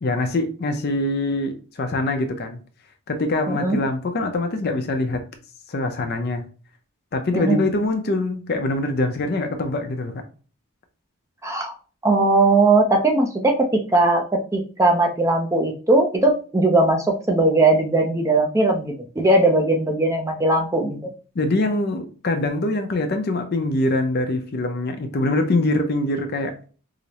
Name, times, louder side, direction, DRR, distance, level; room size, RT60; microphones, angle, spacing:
voice 1, 0.0-2.6 3.1-5.2 5.7-6.4 7.1-10.2 21.4-26.5, left 2 dB, 45° left, 0.5 m, -24 dB
voice 2, 11.4-11.7 12.0-21.0, right 2 dB, 15° right, 0.4 m, -19 dB
4.9 x 2.0 x 2.8 m
head